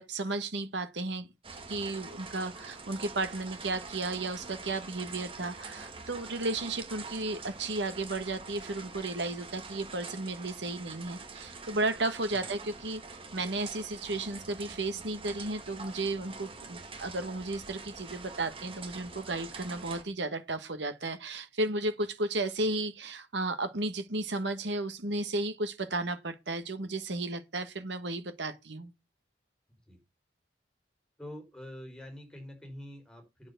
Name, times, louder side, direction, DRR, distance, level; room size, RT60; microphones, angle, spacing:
voice 1, 0.0-13.0 13.3-28.9, right 2 dB, 80° right, 1.4 m, -34 dB
sound 1, 1.4-20.0, right 4 dB, 30° right, 1.9 m, -45 dB
voice 2, 31.2-33.5, left 1 dB, 5° left, 4.5 m, -45 dB
9.1 x 7.1 x 6.6 m
head